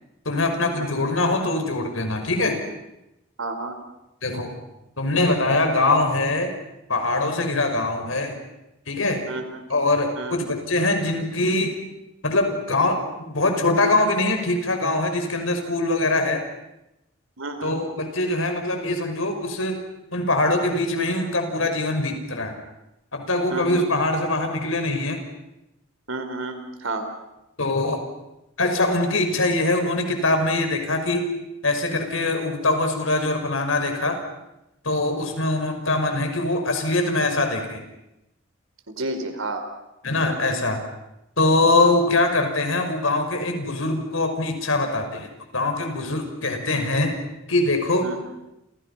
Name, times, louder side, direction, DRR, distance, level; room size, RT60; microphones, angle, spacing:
voice 1, 0.3-2.6 4.2-4.5 5.0-6.5 6.9-8.4 8.9-9.2 9.7-11.7 12.2-16.4 17.6-19.8 20.1-22.5 23.1-25.2 27.6-28.0 28.6-31.2 31.6-34.2 34.8-37.8 40.0-40.8 41.4-47.2 47.5-48.1, left 2 dB, 80° left, 5 dB, 5.9 m, -23 dB
voice 2, 3.4-3.8 9.3-9.6 10.2-10.4 17.4-17.8 23.5-23.9 26.1-27.1 38.9-39.6 41.8-41.9 48.0-48.3, right 2 dB, 85° right, 7 dB, 4.8 m, -31 dB
30.0 x 29.5 x 5.8 m, 0.90 s
head